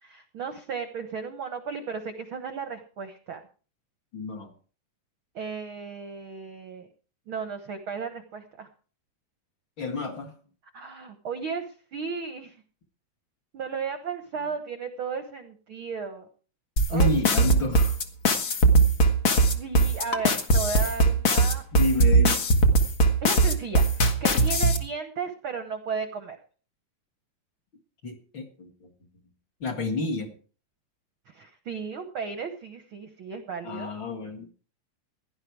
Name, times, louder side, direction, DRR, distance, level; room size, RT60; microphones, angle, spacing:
voice 1, 0.0-3.4 5.3-6.9 7.3-8.7 10.7-12.6 13.5-16.3 16.9-17.1 18.4-18.6 19.5-21.6 23.2-26.4 31.3-33.9, right 5 dB, 65° right, 8 dB, 1.3 m, -35 dB
voice 2, 4.1-4.5 9.8-10.3 16.9-17.9 21.7-22.4 28.0-28.9 29.6-30.3 33.6-34.5, left 3 dB, 40° left, 1 dB, 2.1 m, -30 dB
sound 1, 16.8-24.8, right 2 dB, 85° left, 0.7 m, -20 dB
16.0 x 11.0 x 4.7 m, 0.39 s
omnidirectional pair, 3.9 m